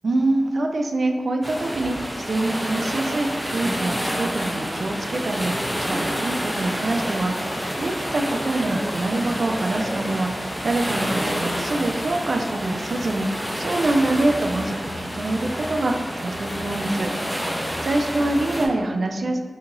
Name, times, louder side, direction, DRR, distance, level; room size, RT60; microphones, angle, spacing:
voice 1, 0.0-17.1 17.4-19.4, right 2 dB, 70° right, 3 dB, 0.3 m, -25 dB
sound 1, 1.4-18.7, equal, ahead, 0.7 m, -28 dB
2.8 x 2.8 x 3.8 m, 1.5 s
cardioid pair, 45°, 0 cm